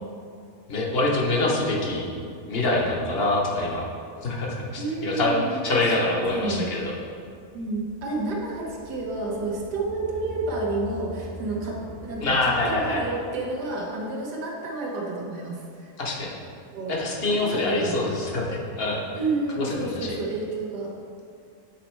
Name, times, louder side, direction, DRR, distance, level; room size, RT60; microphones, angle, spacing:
voice 1, 0.7-2.1 2.5-3.8 4.2-6.9 12.2-13.0 16.0-16.3 16.9-19.0 19.6-20.1, left 2 dB, 45° left, -2 dB, 1.0 m, -25 dB
voice 2, 4.8-5.9 6.3-6.7 7.5-15.9 16.7-17.0 17.2-18.1 19.2-20.9, right 2 dB, 85° right, -2 dB, 1.5 m, -30 dB
sound 1, 7.2-13.9, equal, 75° left, 2.0 m, -43 dB
7.3 x 4.0 x 4.5 m, 2.3 s
omnidirectional pair, 1.7 m